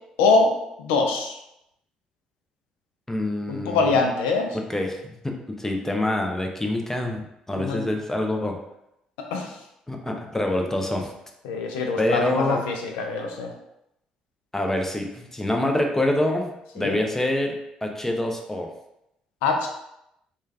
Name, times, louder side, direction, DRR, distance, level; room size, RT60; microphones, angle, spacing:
voice 1, 0.2-1.4 3.5-4.6 7.5-7.9 9.2-9.6 11.4-13.5 16.8-17.0 19.4-19.7, left 3 dB, 70° left, 3 dB, 0.5 m, -24 dB
voice 2, 3.1-4.0 4.5-8.6 9.9-11.1 12.0-12.7 14.5-18.7, left 1 dB, 10° left, 2 dB, 0.6 m, -26 dB
3.2 x 2.3 x 3.3 m, 0.82 s
figure-of-eight pair, 45°, 3 cm